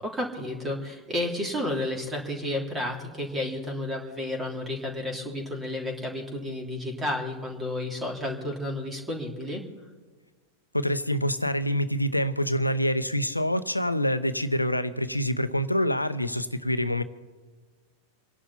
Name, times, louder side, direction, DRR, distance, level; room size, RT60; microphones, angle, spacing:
voice 1, 0.0-9.6, left 1 dB, 15° right, 1 dB, 3.3 m, -31 dB
voice 2, 10.7-17.0, equal, 85° left, 12 dB, 0.9 m, -26 dB
28.0 x 11.0 x 4.2 m, 1.4 s
figure-of-eight pair, 90°, 0 cm